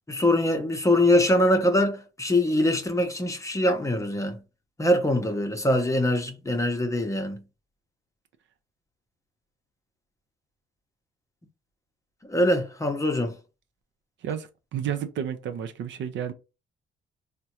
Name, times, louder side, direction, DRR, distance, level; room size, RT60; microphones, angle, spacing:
voice 1, 0.1-4.4 4.8-7.4 12.2-13.4, left 1 dB, 15° left, 0.7 m, -23 dB
voice 2, 14.2-16.3, right 9 dB, 70° right, 0.6 m, -31 dB
3.5 x 2.2 x 2.8 m
cardioid pair, 90°, 20 cm